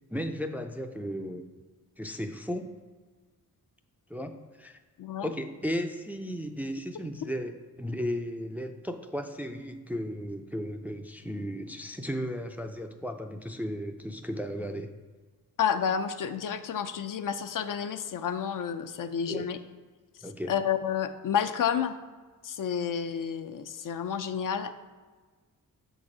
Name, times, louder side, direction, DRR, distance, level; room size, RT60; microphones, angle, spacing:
voice 1, 0.1-1.4 2.0-2.7 4.1-4.8 5.2-14.9 19.0-19.5 20.2-20.5, equal, 5° right, 6 dB, 0.3 m, -35 dB
voice 2, 15.6-19.6 20.5-21.9 22.4-24.7, left 8 dB, 70° left, 9 dB, 0.5 m, -30 dB
6.9 x 4.0 x 4.8 m, 1.4 s
wide cardioid pair, 110°, 34 cm